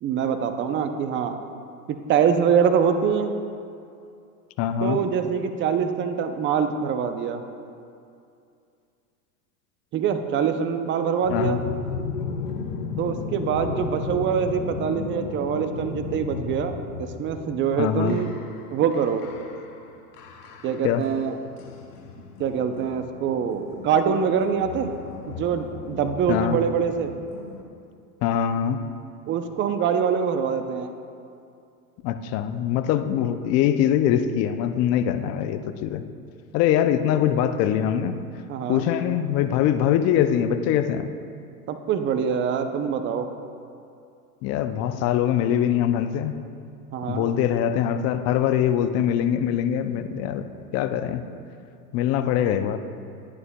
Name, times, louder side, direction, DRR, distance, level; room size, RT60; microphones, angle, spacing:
voice 1, 0.0-1.4 2.1-3.3 4.8-7.4 9.9-11.6 13.0-18.3 18.7-19.2 20.6-21.3 22.4-24.9 25.3-27.1 29.3-30.9 38.5-38.9 41.7-43.3 46.9-47.3, right 7 dB, 25° right, 8 dB, 0.5 m, -24 dB
voice 2, 4.6-5.0 11.3-11.6 17.8-18.2 20.8-21.0 26.3-26.6 28.2-28.8 32.0-36.0 36.5-38.2 38.7-41.1 44.4-46.4 47.1-50.5 50.7-51.2 51.9-52.8, left 10 dB, 35° left, 10 dB, 0.4 m, -23 dB
sound 1, 11.2-27.6, left 5 dB, 85° left, 1.0 m, -35 dB
11.0 x 9.7 x 2.2 m, 2.5 s
hypercardioid pair, 110°, 45 cm